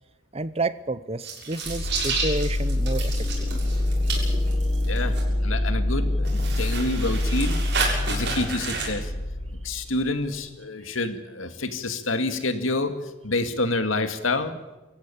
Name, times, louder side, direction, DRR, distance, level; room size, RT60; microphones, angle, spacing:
voice 1, 0.3-3.5, right 2 dB, 30° right, 15 dB, 0.8 m, -30 dB
sound 1, 1.2-5.2 6.2-8.9, right 4 dB, 55° right, 7.1 m, -31 dB
sound 2, 1.7-10.4, left 1 dB, 40° left, 6.1 m, -26 dB
voice 2, 4.8-5.2 5.4-7.6 8.1-9.1 9.6-12.9 13.2-14.6, left 2 dB, 85° left, 8 dB, 2.2 m, -27 dB
24.5 x 15.0 x 10.0 m, 1.1 s
head